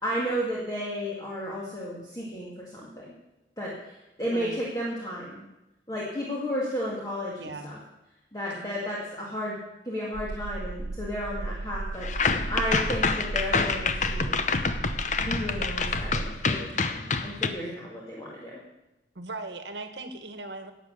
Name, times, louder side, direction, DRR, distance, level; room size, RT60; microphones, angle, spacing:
voice 1, 0.0-3.1 3.6-5.4 5.9-7.8 8.3-9.6 9.8-14.4 15.2-18.6, equal, 20° left, -5 dB, 2.1 m, -33 dB
voice 2, 4.3-4.6 7.4-7.7 19.1-20.7, right 2 dB, 70° right, 8 dB, 1.3 m, -38 dB
sound 1, 10.1-16.7, right 2 dB, 50° right, 0.5 m, -35 dB
sound 2, 12.0-17.5, left 4 dB, 40° left, 0.7 m, -27 dB
11.5 x 7.9 x 8.6 m, 0.97 s
head